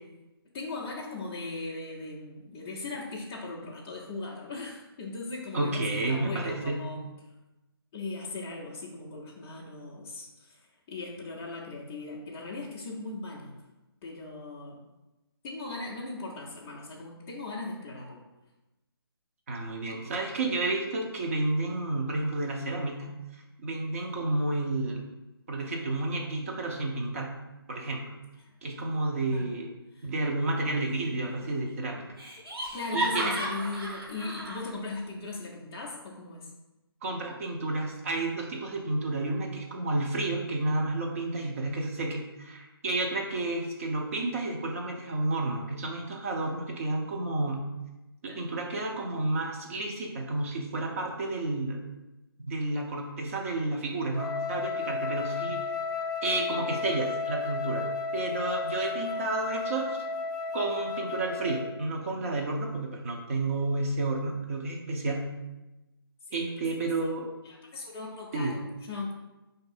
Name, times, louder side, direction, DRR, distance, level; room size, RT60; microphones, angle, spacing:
voice 1, 0.5-7.1 7.9-10.6 10.9-13.5 14.0-14.8 15.4-18.2 28.4-28.5 29.3-29.5 29.9-30.1 32.5-36.5 59.0-59.2 66.3-66.4 67.4-69.1, left 3 dB, 15° left, -6 dB, 0.4 m, -38 dB
voice 2, 5.5-6.8 19.5-25.0 25.5-27.3 27.7-28.2 28.6-29.7 30.0-32.0 32.9-33.3 37.0-47.7 48.2-51.8 52.5-55.6 56.2-57.9 58.1-60.0 60.5-65.3 66.3-67.3 68.3-68.6, right 2 dB, 35° right, 0 dB, 0.8 m, -31 dB
Laughter, 30.9-31.4 31.7-31.8 32.2-34.7, right 1 dB, 70° right, 1.6 m, -34 dB
Wind instrument woodwind instrument, 54.1-61.8, left 4 dB, 50° left, 0.7 m, -33 dB
4.6 x 2.7 x 4.2 m, 1.0 s
figure-of-eight pair, 150°, 13 cm